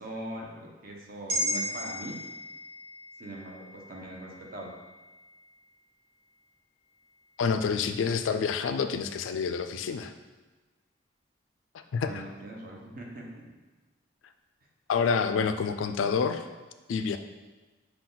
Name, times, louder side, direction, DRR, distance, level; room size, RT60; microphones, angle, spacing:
voice 1, 0.0-2.1 3.2-4.7 12.0-13.5, right 1 dB, 50° right, -1 dB, 0.8 m, -41 dB
sound 1, 1.3-5.8 6.2-6.3, equal, 80° right, 0.9 m, -36 dB
voice 2, 7.4-10.1 11.7-12.2 14.9-16.4 16.9-17.2, left 5 dB, 85° left, 8 dB, 0.3 m, -28 dB
5.8 x 2.3 x 3.8 m, 1.3 s
head